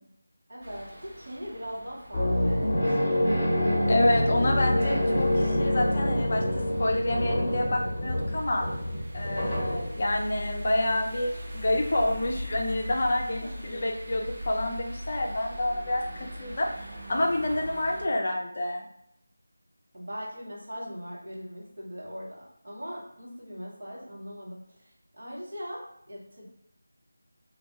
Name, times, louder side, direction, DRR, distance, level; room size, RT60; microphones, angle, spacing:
voice 1, 0.5-3.3 13.4-13.9 19.9-26.4, equal, 50° right, -5 dB, 1.0 m, -40 dB
sound 1, 0.6-18.1, equal, 30° right, 0.5 m, -41 dB
sound 2, 2.1-10.2, left 1 dB, 10° left, 0.9 m, -26 dB
voice 2, 3.9-6.4 6.8-8.7 9.1-16.7 17.1-18.8, left 1 dB, 40° left, 1 dB, 0.4 m, -28 dB
2.2 x 2.2 x 2.9 m, 0.75 s
figure-of-eight pair, 165°, 0 cm